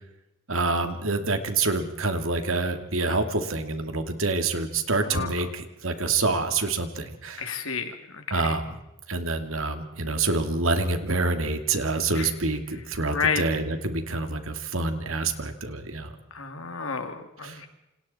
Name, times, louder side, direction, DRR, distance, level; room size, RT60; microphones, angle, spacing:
voice 1, 0.5-7.5 8.3-8.8 9.1-16.1 17.4-17.6, right 3 dB, 70° right, 7 dB, 2.5 m, -27 dB
voice 2, 4.9-5.3 7.4-8.5 12.2-12.3 13.1-13.4 16.3-17.7, left 5 dB, 75° left, 6 dB, 2.8 m, -30 dB
28.5 x 27.0 x 4.4 m, 0.91 s
head